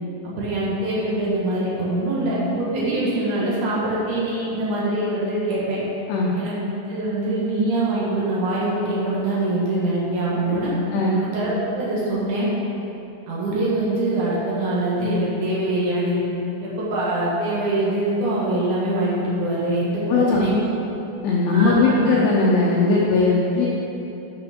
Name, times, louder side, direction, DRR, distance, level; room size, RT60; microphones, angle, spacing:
voice 1, 0.2-5.8 6.3-6.6 6.9-10.7 11.2-12.5 13.3-16.2 16.6-20.6 21.4-22.0, right 1 dB, 70° right, -7 dB, 1.9 m, -24 dB
voice 2, 20.1-20.5 21.2-23.7, left 3 dB, 90° left, -3 dB, 2.3 m, -19 dB
9.3 x 6.1 x 5.0 m, 2.9 s
omnidirectional pair, 5.8 m